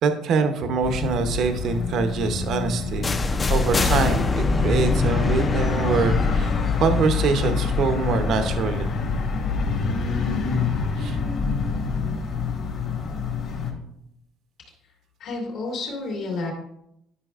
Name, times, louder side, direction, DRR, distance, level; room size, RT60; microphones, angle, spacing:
voice 1, 0.0-3.2 3.5-8.9 11.0-11.2, right 4 dB, 55° right, 8 dB, 0.7 m, -24 dB
sound 1, 0.8-13.7, left 4 dB, 55° left, 1.8 m, -26 dB
sound 2, 3.0-8.9, left 4 dB, 20° left, 0.4 m, -25 dB
voice 2, 15.2-16.5, left 3 dB, 70° left, -6 dB, 2.6 m, -30 dB
11.0 x 5.7 x 2.4 m, 0.77 s
cardioid pair, 135°, 0 cm